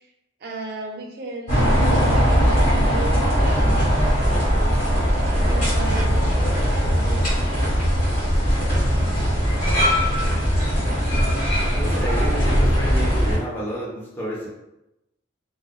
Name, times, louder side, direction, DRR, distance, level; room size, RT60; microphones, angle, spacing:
voice 1, 0.4-1.7 2.1-4.2 5.1-7.6, right 2 dB, 50° right, 1 dB, 0.4 m, -35 dB
sound 1, 1.5-13.4, equal, 40° left, 1.4 m, -20 dB
voice 2, 11.5-14.5, equal, 10° left, -7 dB, 0.6 m, -30 dB
2.6 x 2.1 x 2.3 m, 0.92 s
head